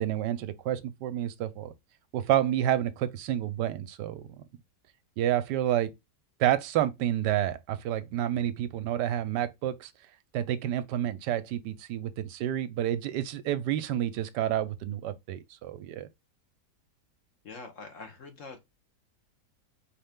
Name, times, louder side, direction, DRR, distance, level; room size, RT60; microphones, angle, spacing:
voice 1, 0.0-1.7 2.1-4.4 5.2-5.9 6.4-9.9 10.3-16.1, right 11 dB, 90° right, 1.2 m, -29 dB
voice 2, 17.4-18.6, left 4 dB, 50° left, 1.2 m, -44 dB
4.5 x 3.3 x 3.6 m
omnidirectional pair, 1.8 m